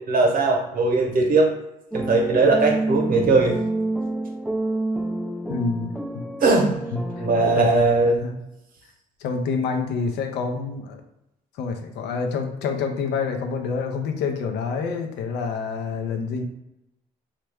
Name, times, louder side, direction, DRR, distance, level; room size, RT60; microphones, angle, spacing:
voice 1, 0.0-1.5 1.9-3.5 6.4-6.8 7.2-8.2, right 3 dB, 55° right, 1 dB, 0.9 m, -19 dB
sound 1, 1.9-7.6, right 2 dB, 5° right, 0.3 m, -28 dB
voice 2, 5.5-6.2 6.9-7.3 7.5-8.4 9.2-11.0 11.6-16.4, left 5 dB, 75° left, 5 dB, 0.6 m, -27 dB
3.1 x 2.4 x 3.4 m, 0.87 s
supercardioid pair, 65°, 18 cm